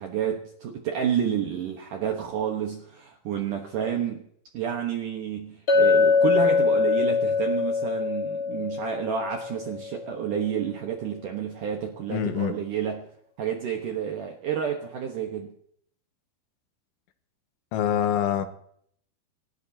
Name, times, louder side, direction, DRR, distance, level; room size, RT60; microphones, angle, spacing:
voice 1, 0.0-4.3 4.5-13.1 13.4-15.5, right 8 dB, 75° right, 1.9 m, -30 dB
Chink clink, 5.7-10.1, left 5 dB, 70° left, 1.3 m, -23 dB
voice 2, 12.1-12.6 17.7-18.5, left 9 dB, 90° left, 3.4 m, -25 dB
28.5 x 14.0 x 2.8 m
omnidirectional pair, 5.3 m